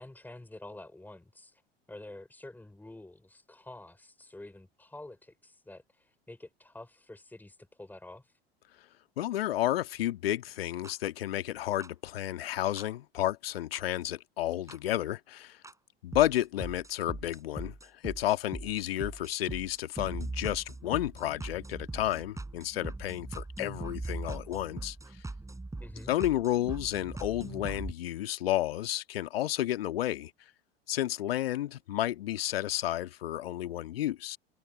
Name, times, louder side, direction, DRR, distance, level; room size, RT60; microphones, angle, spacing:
voice 1, 0.0-1.6 1.9-8.3 25.8-26.1, left 2 dB, 5° left, 3.6 m, -48 dB
voice 2, 9.2-15.6 16.0-24.9 26.1-30.3 30.9-34.4, left 13 dB, 70° left, 1.8 m, -31 dB
sound 1, 10.8-10.9 11.8-11.9 12.8-12.9 13.7-13.8 14.7-14.8 15.6-15.7 16.1-27.9, right 2 dB, 10° right, 7.9 m, -40 dB
figure-of-eight pair, 75°, 31 cm